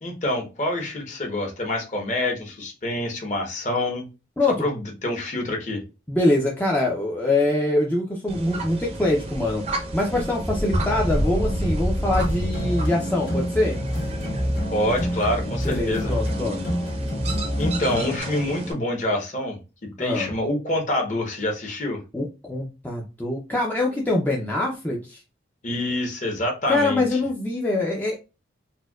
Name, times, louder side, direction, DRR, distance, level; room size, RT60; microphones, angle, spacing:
voice 1, 0.0-4.1 4.6-5.8 14.7-16.1 17.6-22.0 25.6-27.2, left 1 dB, 40° left, 2 dB, 0.9 m, -26 dB
voice 2, 6.1-9.6 9.9-13.8 15.6-16.7 20.0-20.3 22.1-25.2 26.7-28.2, left 2 dB, 10° left, -2 dB, 0.4 m, -24 dB
sound 1, 8.3-18.7, right 1 dB, 35° right, 0.6 m, -30 dB
sound 2, 10.7-18.2, equal, 65° left, 1.5 m, -28 dB
4.2 x 2.2 x 2.3 m, 0.29 s
head